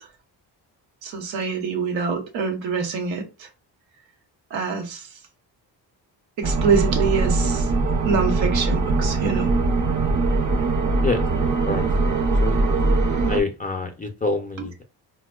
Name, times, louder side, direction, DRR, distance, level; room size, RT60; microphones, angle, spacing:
voice 1, 1.0-3.5 4.5-5.1 6.4-7.7 8.0-9.5, right 5 dB, 85° right, 1.0 m, -25 dB
sound 1, 6.4-13.4, right 3 dB, 40° right, 0.6 m, -21 dB
voice 2, 13.3-14.8, left 3 dB, 20° left, 0.4 m, -26 dB
4.2 x 2.1 x 2.2 m
cardioid pair, 80°, 44 cm